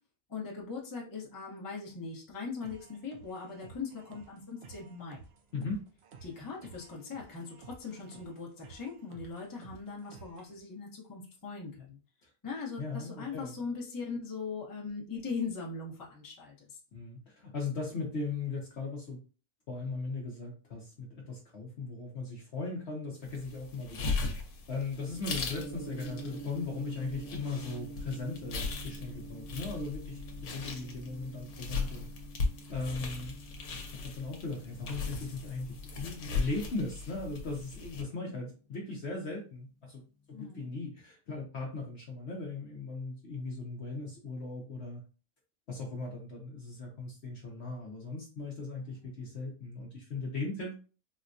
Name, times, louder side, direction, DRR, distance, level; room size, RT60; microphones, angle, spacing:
voice 1, 0.3-5.2 6.2-12.0 12.4-16.8 38.1-38.3 40.3-40.7 48.8-49.2, left 5 dB, 20° left, -3 dB, 0.7 m, -40 dB
sound 1, 2.6-10.6, right 5 dB, 65° right, 0.6 m, -54 dB
voice 2, 12.8-13.5 16.9-19.2 19.7-24.1 24.7-32.1 32.7-33.3 33.9-40.0 40.3-45.0 45.7-50.7, left 3 dB, 55° left, -1 dB, 0.9 m, -38 dB
sound 2, 23.2-38.0, left 4 dB, 80° left, 1.3 m, -38 dB
Gong, 25.5-39.6, right 2 dB, 25° right, 1.0 m, -48 dB
4.2 x 2.2 x 2.5 m, 0.36 s
omnidirectional pair, 1.6 m